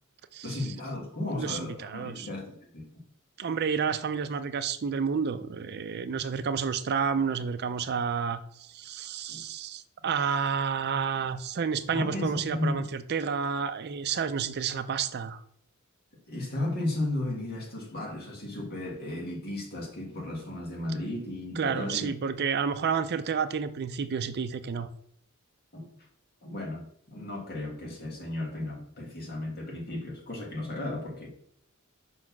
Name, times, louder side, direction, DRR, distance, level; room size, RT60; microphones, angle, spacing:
voice 1, 0.4-2.9 9.3-9.4 11.9-12.8 16.3-22.1 25.7-25.9 26.4-31.3, left 1 dB, 50° left, -1 dB, 2.0 m, -34 dB
voice 2, 1.4-2.3 3.4-15.4 21.6-24.9, right 6 dB, 50° right, 11 dB, 0.4 m, -30 dB
5.3 x 4.2 x 5.9 m, 0.66 s
head